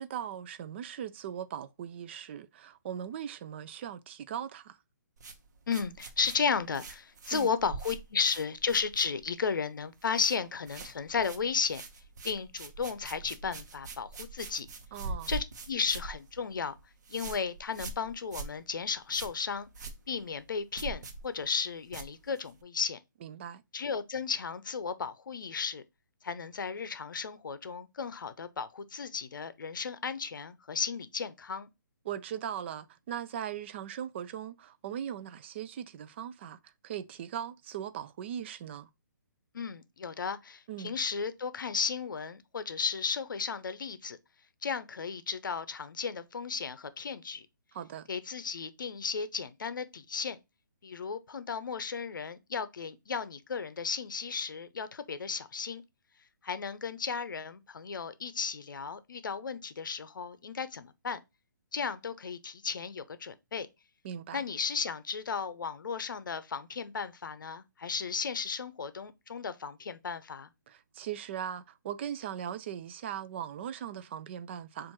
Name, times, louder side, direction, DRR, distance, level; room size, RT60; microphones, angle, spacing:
voice 1, 0.0-4.8 7.3-7.5 14.9-15.3 23.2-23.6 32.0-38.9 40.7-41.0 47.7-48.1 64.0-64.4 70.7-74.9, right 9 dB, 35° right, 0.4 m, -39 dB
sound 1, 5.2-9.5 9.8-10.4 10.6-22.6, right 3 dB, 60° right, 0.9 m, -43 dB
voice 2, 5.7-11.8 12.2-14.7 15.3-16.7 17.1-19.7 20.1-23.0 23.7-25.8 26.2-31.7 39.5-44.2 44.6-47.5 48.1-50.4 50.8-55.8 56.4-61.2 61.7-63.7 64.3-70.5, left 5 dB, 75° left, 0.6 m, -34 dB
6.9 x 2.5 x 2.9 m
hypercardioid pair, 150°, 11 cm